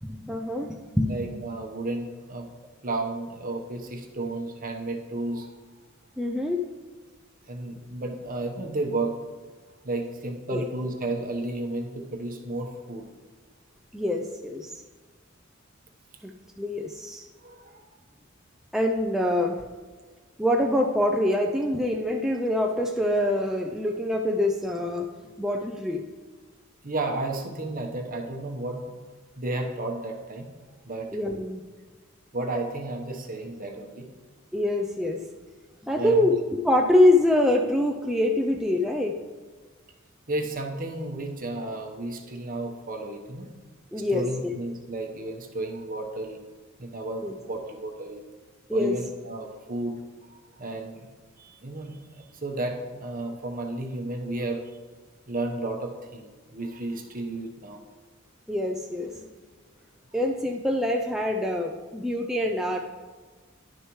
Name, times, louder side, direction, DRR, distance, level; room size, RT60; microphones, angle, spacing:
voice 1, 0.0-1.3 6.2-6.6 10.5-10.6 13.9-14.8 16.2-16.3 16.6-17.3 18.7-19.6 20.4-25.1 25.4-26.0 31.1-31.6 34.5-35.2 35.8-39.2 43.9-44.5 47.2-47.3 48.7-49.0 58.5-59.3 60.1-62.8, left 1 dB, ahead, 1 dB, 0.4 m, -25 dB
voice 2, 1.0-2.5 2.8-5.5 7.5-9.1 9.8-13.1 17.4-18.0 26.8-29.0 29.4-30.5 30.8-31.1 32.3-34.1 35.9-36.3 40.3-43.5 44.0-46.4 46.8-48.2 48.7-50.0 50.3-51.1 51.4-54.7 55.3-57.8, right 2 dB, 45° right, 2 dB, 1.1 m, -33 dB
11.0 x 6.6 x 3.1 m, 1.4 s
head